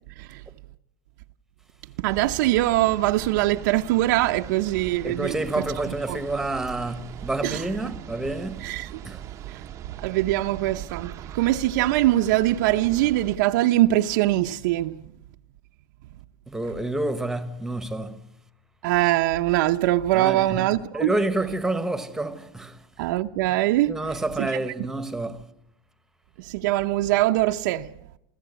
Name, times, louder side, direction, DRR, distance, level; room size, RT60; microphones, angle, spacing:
voice 1, 2.0-6.2 7.4-7.9 8.6-9.0 9.5-9.6 9.9-15.0 18.8-21.1 23.0-24.1 24.4-24.9 26.4-27.9, right 16 dB, 55° right, 0.8 m, -23 dB
sound 1, 2.1-13.4, right 11 dB, 25° right, 0.8 m, -40 dB
voice 2, 5.0-9.2 16.5-18.3 20.1-20.7 20.9-22.8 23.9-25.5, right 2 dB, 5° right, 1.2 m, -29 dB
27.5 x 15.5 x 8.2 m
supercardioid pair, 165°, 12 cm